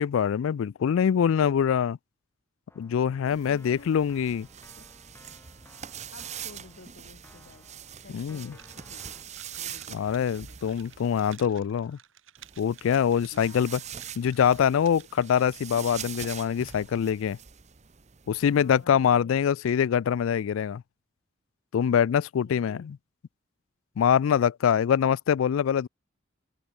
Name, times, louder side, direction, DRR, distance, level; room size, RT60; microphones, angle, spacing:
voice 1, 0.0-2.0 2.8-4.5 8.1-8.5 9.9-12.0 12.6-13.8 14.2-17.4 18.3-20.8 21.7-23.0 24.0-25.9, left 8 dB, 75° left, 0.3 m, -24 dB
Keyboard (musical), 2.7-9.2, left 1 dB, 10° left, 2.1 m, -57 dB
voice 2, 3.2-3.9 4.8-4.9 6.1-7.7 8.0-9.2 9.6-10.6 13.3-13.9 18.4-19.3 22.4-23.0, left 3 dB, 60° left, 1.1 m, -52 dB
sound 1, 3.3-11.4 12.4-18.8, right 9 dB, 35° right, 0.9 m, -43 dB
sound 2, 8.5-16.0, right 10 dB, 70° right, 3.1 m, -54 dB
open air
head